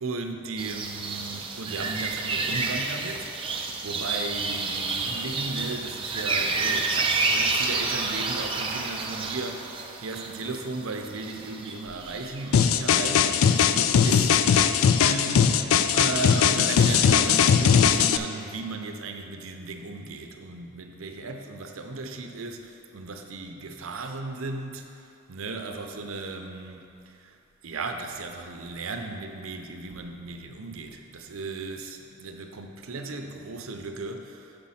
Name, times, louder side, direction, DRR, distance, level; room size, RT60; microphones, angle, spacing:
voice 1, 0.0-3.3 3.8-14.8 15.0-15.6 15.9-27.4 27.6-34.6, right 3 dB, 90° right, 5 dB, 0.6 m, -36 dB
sound 1, 0.6-12.6, right 3 dB, 25° right, 0.5 m, -29 dB
sound 2, 12.5-18.2, left 7 dB, 80° left, 0.3 m, -20 dB
6.8 x 5.3 x 5.7 m, 2.6 s
head